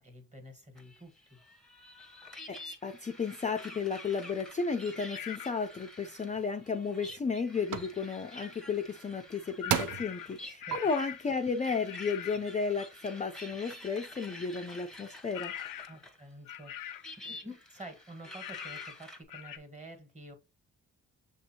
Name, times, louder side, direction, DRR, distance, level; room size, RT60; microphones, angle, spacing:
voice 1, 0.0-1.4 10.7-10.9 15.9-20.3, right 1 dB, 20° right, 1.5 m, -49 dB
sound 1, 0.8-16.2 16.5-19.2, left 1 dB, ahead, 0.9 m, -49 dB
voice 2, 2.5-15.5, left 5 dB, 25° left, 0.4 m, -33 dB
sound 2, 5.1-5.6 9.6-11.3 11.9-12.5 15.3-16.0 16.5-17.1 18.4-19.0 19.3-19.6, left 10 dB, 85° left, 0.6 m, -42 dB
sound 3, 6.3-6.4 7.0-7.3 7.7-7.9 9.1-9.2 9.7-10.1 10.7-10.8, right 8 dB, 70° right, 0.6 m, -31 dB
6.7 x 2.7 x 2.7 m
cardioid pair, 95°, 32 cm